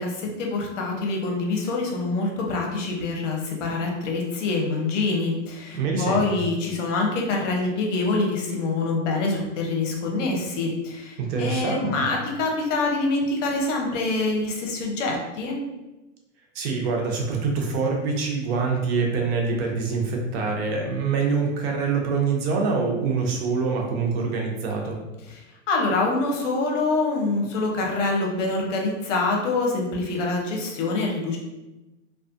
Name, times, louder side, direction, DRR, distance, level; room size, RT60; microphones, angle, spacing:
voice 1, 0.0-15.6 25.7-31.4, left 3 dB, 70° left, 0 dB, 0.8 m, -25 dB
voice 2, 5.7-6.4 11.2-12.0 16.5-25.0, right 4 dB, 50° right, 1 dB, 0.7 m, -25 dB
2.5 x 2.4 x 2.4 m, 1.1 s
hypercardioid pair, 125°, 39 cm